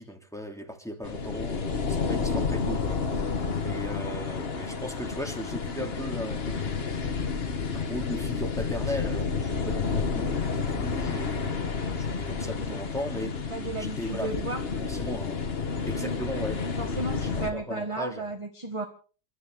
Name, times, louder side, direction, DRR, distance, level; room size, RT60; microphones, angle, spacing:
voice 1, 0.0-6.7 7.7-13.4 13.8-14.3 14.8-15.4 15.9-18.3, equal, ahead, 3 dB, 2.7 m, -37 dB
sound 1, 1.0-17.5, left 5 dB, 35° left, 1.5 m, -30 dB
voice 2, 13.5-14.9 15.9-16.2 16.6-18.8, right 2 dB, 20° right, 4 dB, 1.6 m, -34 dB
28.5 x 13.0 x 3.6 m, 0.39 s
omnidirectional pair, 1.9 m